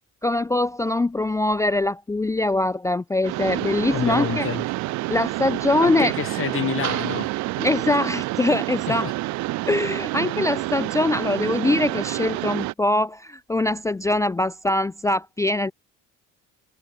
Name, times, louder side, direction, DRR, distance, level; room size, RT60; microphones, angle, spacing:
voice 1, 0.2-4.5 5.1-6.1 7.6-9.1 9.7-15.7, left 2 dB, 10° left, 0.4 m, -23 dB
Mechanisms, 3.2-12.7, right 20 dB, 60° right, 0.5 m, -28 dB
voice 2, 3.9-4.6 5.8-7.3 8.9-9.1, left 9 dB, 40° left, 2.6 m, -28 dB
cardioid pair, 110°, 32 cm